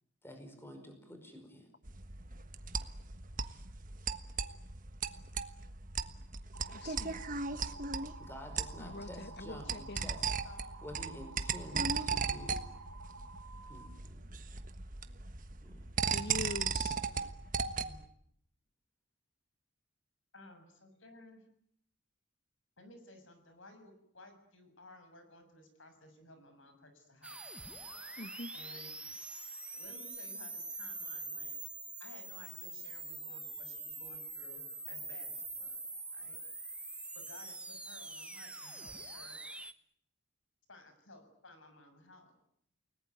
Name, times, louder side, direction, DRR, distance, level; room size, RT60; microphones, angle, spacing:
voice 1, 0.2-1.7 8.2-10.2 10.8-12.7 13.7-14.4 15.6-15.8, equal, 10° left, 6 dB, 5.2 m, -50 dB
sound 1, 1.9-18.0, right 5 dB, 40° right, 1.4 m, -37 dB
sound 2, 6.5-13.9, right 4 dB, 90° right, 3.3 m, -52 dB
voice 2, 6.7-7.2 8.8-10.1 16.1-17.0 28.2-28.5, left 2 dB, 55° left, 13 dB, 1.3 m, -43 dB
voice 3, 9.4-10.1 10.4-10.8 17.8-18.0 20.3-21.4 22.8-27.4 28.5-28.9 29.7-31.6 32.0-35.8 36.1-36.4 37.1-39.4 40.7-42.4, left 1 dB, 70° left, 8 dB, 7.0 m, -56 dB
sound 3, 27.2-39.7, right 2 dB, 5° right, 1.1 m, -44 dB
30.0 x 19.5 x 9.4 m, 0.71 s
head